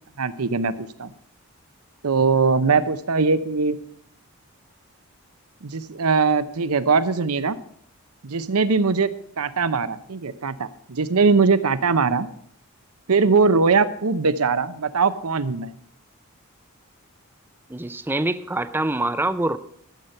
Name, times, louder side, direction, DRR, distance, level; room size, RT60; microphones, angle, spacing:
voice 1, 0.2-1.1 2.0-3.8 5.6-7.6 8.2-9.1 9.4-12.3 13.1-15.7, right 4 dB, 85° right, 13 dB, 0.8 m, -21 dB
voice 2, 17.7-19.6, right 2 dB, 10° right, 12 dB, 0.5 m, -25 dB
13.0 x 8.0 x 5.5 m, 0.64 s
head